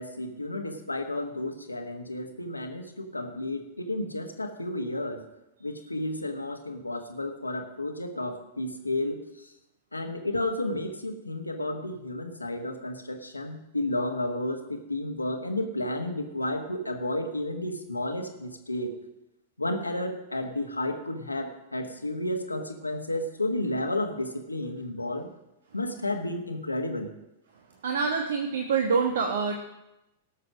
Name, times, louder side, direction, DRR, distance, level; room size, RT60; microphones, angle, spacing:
voice 1, 0.0-5.2 5.6-9.5 9.9-18.9 19.6-25.3 25.7-27.1, left 1 dB, 90° left, 5 dB, 1.5 m, -32 dB
voice 2, 27.8-29.5, right 5 dB, 65° right, 4 dB, 1.2 m, -26 dB
17.5 x 6.7 x 6.3 m, 0.95 s
figure-of-eight pair, 100°, 0 cm